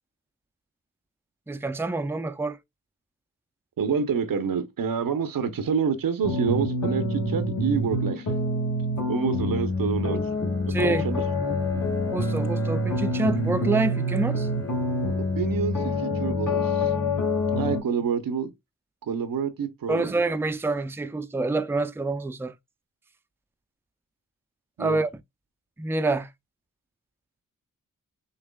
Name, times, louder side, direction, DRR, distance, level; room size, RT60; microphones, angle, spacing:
voice 1, 1.5-2.6 10.7-11.1 12.1-14.5 19.9-22.5 24.8-25.1 25.8-26.3, right 2 dB, 5° right, 0.4 m, -27 dB
voice 2, 3.8-8.3 9.1-10.2 10.8-11.2 15.2-16.9 17.5-18.5 19.0-20.1 24.8-25.0, right 6 dB, 85° right, 0.8 m, -28 dB
sound 1, 6.2-17.8, left 1 dB, 65° left, 2.1 m, -26 dB
Bowed string instrument, 9.3-17.1, left 2 dB, 45° left, 1.7 m, -40 dB
6.7 x 2.9 x 2.3 m
cardioid pair, 60°, 33 cm